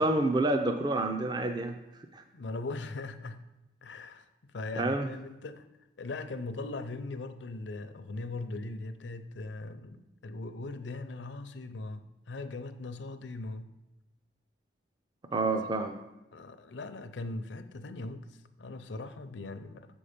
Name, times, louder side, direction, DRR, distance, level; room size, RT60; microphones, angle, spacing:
voice 1, 0.0-1.8 2.1-2.2 4.8-5.1 15.3-16.0, right 2 dB, 25° right, 6 dB, 0.4 m, -28 dB
voice 2, 2.3-3.4 3.8-4.3 4.5-5.6 6.0-13.7 15.3-15.5 16.3-19.9, left 2 dB, 80° left, 10 dB, 0.6 m, -40 dB
7.3 x 5.4 x 5.1 m, 0.98 s
head